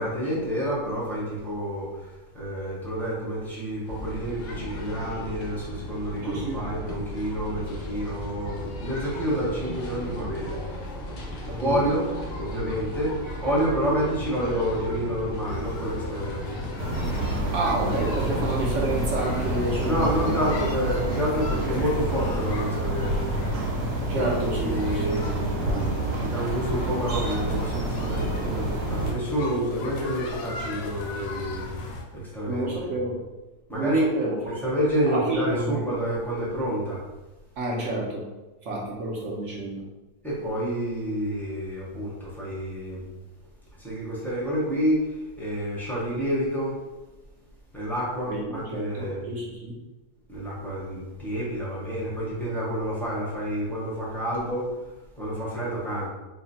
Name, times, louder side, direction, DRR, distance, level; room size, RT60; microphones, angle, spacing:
voice 1, 0.0-1.9 2.3-10.5 11.6-12.0 12.4-16.6 19.8-23.3 24.1-31.7 32.1-32.9 33.7-34.1 34.4-37.0 40.2-43.0 43.8-45.1 45.4-46.7 47.7-49.2 50.3-54.7 55.2-56.1, equal, ahead, -7 dB, 0.6 m, -28 dB
sound 1, 3.8-20.7, left 1 dB, 55° left, 0.7 m, -36 dB
voice 2, 6.2-6.6 11.5-11.7 17.5-20.4 24.1-25.2 25.6-26.0 32.5-33.2 33.7-34.3 35.0-36.1 37.6-38.2 38.6-39.8 48.3-49.8, right 2 dB, 60° right, -3 dB, 0.9 m, -30 dB
sound 2, 15.5-32.0, left 2 dB, 90° left, 1.2 m, -36 dB
sound 3, 16.8-29.1, right 1 dB, 80° right, 1.3 m, -29 dB
3.2 x 2.3 x 4.1 m, 1.1 s
omnidirectional pair, 1.8 m